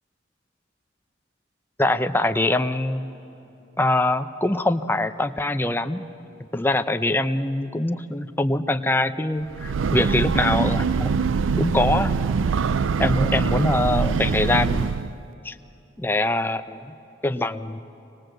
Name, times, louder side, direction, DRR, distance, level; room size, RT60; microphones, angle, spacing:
voice 1, 1.8-3.1 3.8-6.1 6.5-11.1 11.6-12.2 13.0-14.9 15.4-15.6 16.0-16.9 17.2-17.8, left 2 dB, 10° left, 8 dB, 0.6 m, -23 dB
Breathing / Train, 9.4-15.2, right 5 dB, 85° right, 0.4 m, -23 dB
25.0 x 20.0 x 7.8 m, 2.9 s
head